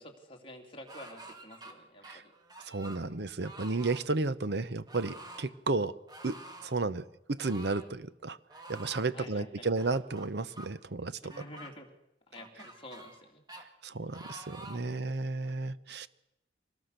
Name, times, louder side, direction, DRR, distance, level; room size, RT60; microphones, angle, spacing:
voice 1, 0.0-2.3 9.1-9.6 11.2-11.9 12.3-13.4 14.9-15.3, left 1 dB, 30° left, 1 dB, 3.1 m, -49 dB
sound 1, 0.9-1.7 2.0-3.0 3.4-4.0 4.9-5.5 6.1-6.8 7.4-7.9 8.5-9.1 9.8-10.7 11.3-11.7 12.4-13.2 13.5-13.6 14.1-14.9 15.5-15.6, right 2 dB, 20° right, 2.0 m, -49 dB
voice 2, 2.7-5.9 6.2-8.4 8.7-11.3 13.8-16.1, right 3 dB, 60° right, 15 dB, 0.8 m, -33 dB
25.0 x 19.0 x 6.7 m, 0.86 s
head